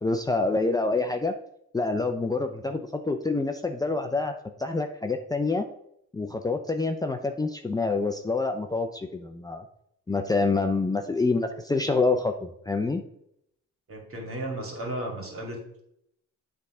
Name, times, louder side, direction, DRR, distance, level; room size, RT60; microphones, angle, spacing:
voice 1, 0.0-1.3 1.7-4.3 4.6-5.7 6.1-9.6 10.1-13.0, left 3 dB, 15° left, 5 dB, 0.5 m, -27 dB
voice 2, 13.9-15.8, right 1 dB, 45° right, 1 dB, 2.4 m, -34 dB
8.3 x 3.5 x 4.9 m, 0.75 s
cardioid pair, 90°, 30 cm